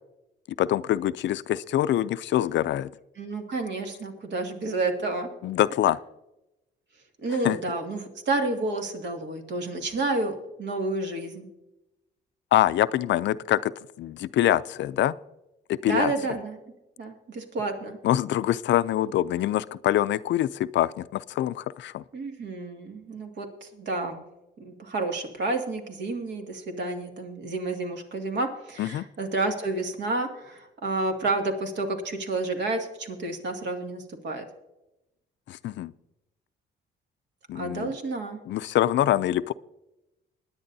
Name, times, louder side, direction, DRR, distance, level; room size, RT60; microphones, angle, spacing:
voice 1, 0.6-2.9 5.4-6.0 7.4-7.6 12.5-15.2 15.7-16.1 18.0-22.0 28.8-29.1 35.5-35.9 37.5-37.9 38.5-39.5, left 13 dB, 65° left, 16 dB, 0.4 m, -25 dB
voice 2, 3.2-5.3 7.2-11.5 15.8-16.6 17.0-18.0 22.1-24.2 24.6-34.4 37.5-38.4, right 2 dB, 60° right, 4 dB, 2.1 m, -30 dB
21.5 x 10.0 x 2.7 m, 0.95 s
cardioid pair, 90°, 20 cm